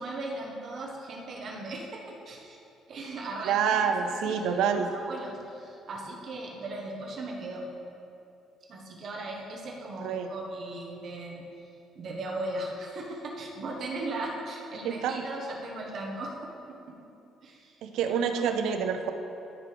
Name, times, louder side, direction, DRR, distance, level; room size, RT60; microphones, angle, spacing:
voice 1, 0.0-2.6 2.9-7.7 8.7-11.7 11.9-17.0 17.4-17.7 18.0-18.4, right 2 dB, 45° right, -1 dB, 1.2 m, -38 dB
voice 2, 3.4-4.9 10.0-10.3 14.8-15.2 17.8-19.1, right 7 dB, 80° right, 6 dB, 0.6 m, -27 dB
13.5 x 4.7 x 3.4 m, 2.8 s
cardioid pair, 150°, 0 cm